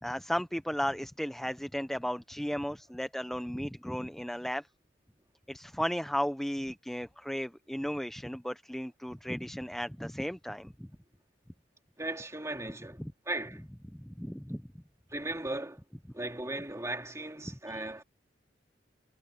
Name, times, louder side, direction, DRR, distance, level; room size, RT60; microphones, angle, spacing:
voice 1, 0.0-4.7 5.5-10.9 13.0-13.1 13.9-14.6 17.7-17.9, equal, ahead, 0.5 m, -35 dB
voice 2, 12.0-13.6 15.1-15.8 16.1-18.0, right 2 dB, 15° right, 2.7 m, -37 dB
head